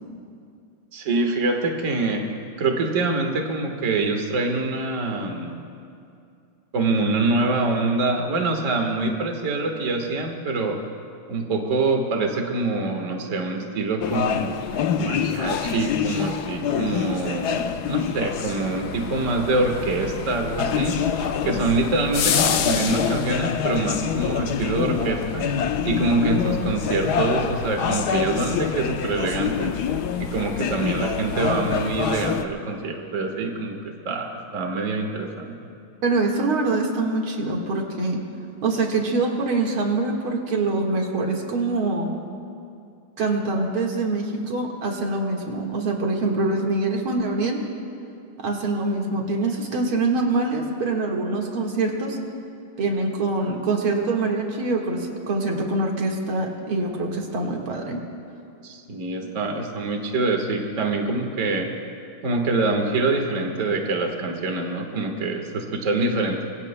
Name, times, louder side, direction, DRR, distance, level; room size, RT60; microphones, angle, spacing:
voice 1, 0.9-2.3 2.6-5.6 6.7-10.8 11.3-14.5 15.0-21.0 21.4-25.5 25.8-29.8 30.2-35.5 58.6-61.7 62.2-66.4, right 3 dB, 40° right, 3 dB, 1.7 m, -25 dB
sound 1, 14.0-32.4, left 7 dB, 65° left, 1.1 m, -26 dB
voice 2, 36.0-38.2 38.6-42.1 43.2-47.7 48.4-52.2 52.8-58.0, right 3 dB, 90° right, 0 dB, 2.6 m, -24 dB
25.5 x 23.5 x 2.2 m, 2.5 s
omnidirectional pair, 2.2 m